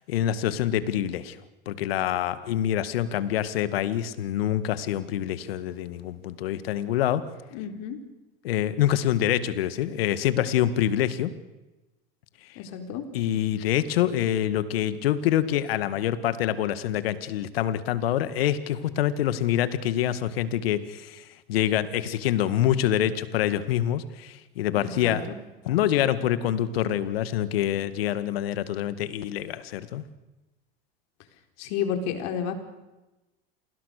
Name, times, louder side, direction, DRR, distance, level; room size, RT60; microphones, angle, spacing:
voice 1, 0.1-1.4 1.7-7.2 8.4-11.3 13.1-25.2 25.7-30.0, left 11 dB, 80° left, 13 dB, 1.9 m, -26 dB
voice 2, 7.5-8.0 12.6-13.0 24.8-25.2 31.6-32.5, left 8 dB, 65° left, 6 dB, 4.4 m, -31 dB
28.5 x 20.0 x 6.6 m, 1.1 s
hypercardioid pair, 90°, 29 cm